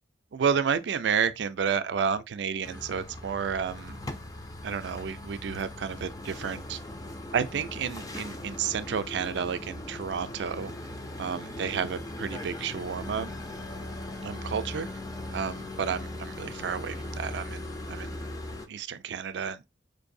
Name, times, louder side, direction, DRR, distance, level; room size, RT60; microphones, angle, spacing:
voice 1, 0.3-4.0 4.6-6.8 7.3-10.7 11.2-13.3 14.2-14.9 15.3-18.2 18.7-19.6, right 7 dB, 60° right, 0.4 m, -31 dB
sound 1, 2.6-18.7, left 1 dB, 20° left, 0.4 m, -39 dB
4.5 x 2.6 x 2.6 m
head